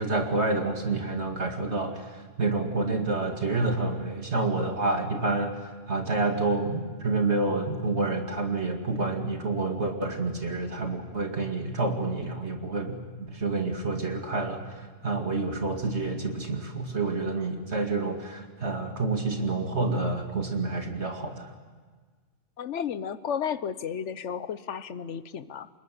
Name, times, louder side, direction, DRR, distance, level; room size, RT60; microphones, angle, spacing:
voice 1, 0.0-5.5 5.9-21.5, right 3 dB, 50° right, 3 dB, 2.5 m, -28 dB
voice 2, 22.6-25.7, left 7 dB, 60° left, 14 dB, 1.2 m, -33 dB
26.0 x 21.5 x 9.9 m, 1.5 s
omnidirectional pair, 1.5 m